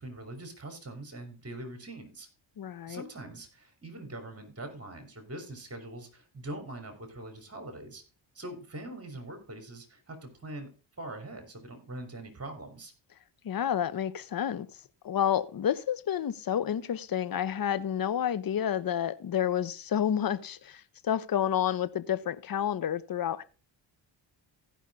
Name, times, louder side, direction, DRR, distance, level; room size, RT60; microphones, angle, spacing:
voice 1, 0.0-2.3 2.9-8.0 8.3-10.7 11.0-12.9, right 1 dB, 30° right, 3.8 m, -43 dB
voice 2, 2.6-3.0 13.4-14.7 15.0-23.4, left 9 dB, 45° left, 0.9 m, -30 dB
15.5 x 5.5 x 3.7 m
supercardioid pair, 60°, 48 cm